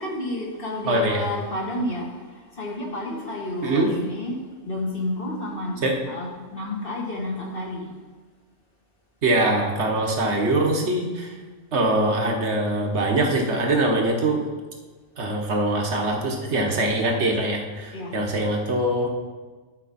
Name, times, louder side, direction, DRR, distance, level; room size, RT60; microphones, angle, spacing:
voice 1, 0.0-7.9 17.9-18.2, left 1 dB, 45° left, -1 dB, 1.7 m, -31 dB
voice 2, 0.8-1.2 3.6-3.9 5.8-5.9 9.2-11.3 11.7-14.4 15.2-19.1, right 1 dB, 60° right, 1 dB, 1.5 m, -23 dB
11.5 x 5.1 x 4.2 m, 1.4 s
omnidirectional pair, 1.4 m